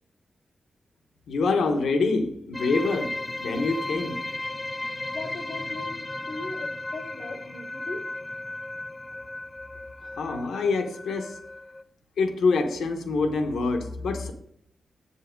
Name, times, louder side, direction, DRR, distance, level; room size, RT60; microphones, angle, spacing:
voice 1, 1.3-4.2 10.0-11.4 12.2-14.3, left 3 dB, 90° left, 1.0 m, -26 dB
sound 1, 2.5-11.8, left 2 dB, 25° left, 0.4 m, -35 dB
voice 2, 5.1-8.1, left 3 dB, 65° left, 0.8 m, -39 dB
7.1 x 5.5 x 5.1 m
cardioid pair, 65°, 0 cm